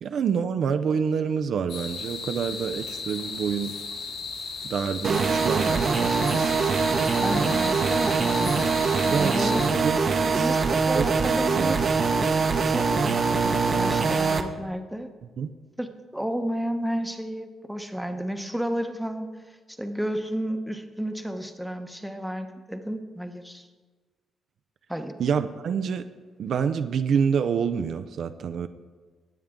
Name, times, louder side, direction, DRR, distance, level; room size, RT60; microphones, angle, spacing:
voice 1, 0.0-3.7 4.6-6.6 9.1-9.5 9.8-10.0 10.3-10.5 10.9-11.1 11.5-11.7 15.4-15.5 25.2-26.1 26.4-28.7, right 6 dB, 60° right, 10 dB, 0.5 m, -27 dB
sound 1, 1.7-9.7, left 4 dB, 85° left, 2.7 m, -36 dB
sound 2, 5.0-14.4, right 4 dB, 45° right, 0.9 m, -23 dB
voice 2, 7.2-8.7 9.0-9.7 10.2-11.9 12.6-15.1 15.8-15.9 16.1-19.3 19.7-23.7 24.9-25.1, equal, ahead, 6 dB, 0.9 m, -32 dB
18.5 x 7.3 x 3.7 m, 1.4 s
cardioid pair, 90°, 0 cm